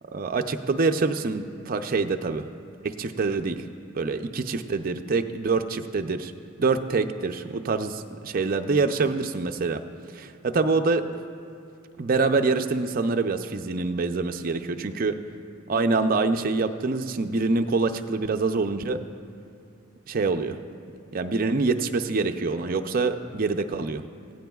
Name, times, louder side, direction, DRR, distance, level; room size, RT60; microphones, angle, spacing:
voice 1, 0.1-2.5 2.8-3.6 3.9-6.3 6.6-9.8 10.2-11.0 12.0-15.2 15.7-19.0 20.1-20.6 21.1-24.0, right 3 dB, 45° right, 6 dB, 0.5 m, -25 dB
21.0 x 15.5 x 2.3 m, 2.4 s
head